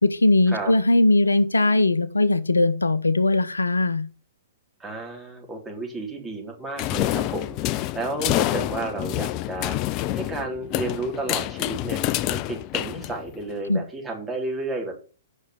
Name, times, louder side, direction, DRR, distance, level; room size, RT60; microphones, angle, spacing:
voice 1, 0.0-4.0 13.7-13.8, left 2 dB, 85° left, 14 dB, 0.8 m, -20 dB
voice 2, 4.8-12.0 12.3-14.9, right 2 dB, 10° right, 0 dB, 3.8 m, -32 dB
sound 1, 6.8-13.5, left 14 dB, 35° left, 0.5 m, -27 dB
8.7 x 6.3 x 6.7 m, 0.36 s
figure-of-eight pair, 115°, 0 cm